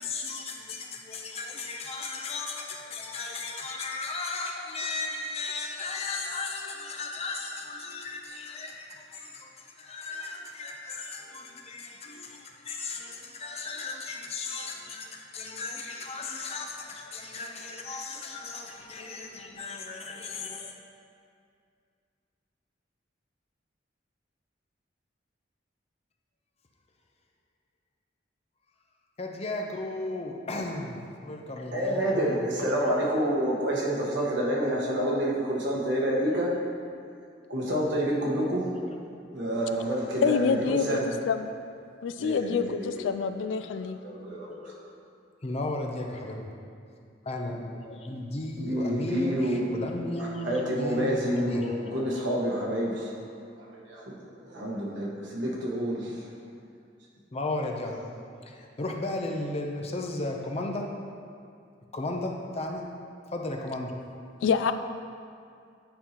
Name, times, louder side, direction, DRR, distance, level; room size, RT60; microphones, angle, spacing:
voice 1, 0.0-20.7 29.2-32.5 38.7-39.0 42.8-43.2 43.8-44.7 45.4-46.5 47.2-51.8 57.3-58.1 58.4-60.9 61.9-62.8 63.3-64.0, left 2 dB, 35° left, 2 dB, 0.6 m, -35 dB
voice 2, 31.7-36.5 37.5-38.6 39.3-41.1 42.2-42.9 43.8-44.5 48.6-49.9 50.4-53.1 54.4-56.2, equal, 75° right, -4 dB, 1.3 m, -28 dB
voice 3, 40.2-41.0 41.3-41.5 42.0-44.0 64.4-64.7, left 6 dB, 80° left, 10 dB, 0.3 m, -26 dB
8.7 x 5.4 x 2.9 m, 2.3 s
head